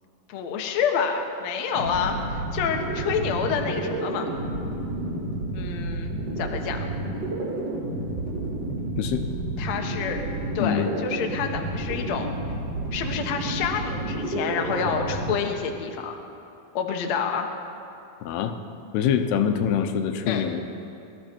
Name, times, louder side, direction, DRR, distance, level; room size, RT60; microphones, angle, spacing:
voice 1, 0.3-4.3 5.5-6.8 9.6-10.2 10.6-12.3 12.9-16.2 16.7-17.5 20.3-20.4, left 6 dB, 65° left, 3 dB, 1.8 m, -28 dB
sound 1, 1.7-15.3, right 2 dB, 40° right, 1.6 m, -30 dB
voice 2, 9.0-9.3 10.6-10.9 18.2-18.5 18.9-20.6, left 8 dB, 90° left, 7 dB, 2.9 m, -24 dB
22.0 x 13.0 x 4.5 m, 2.8 s
omnidirectional pair, 4.5 m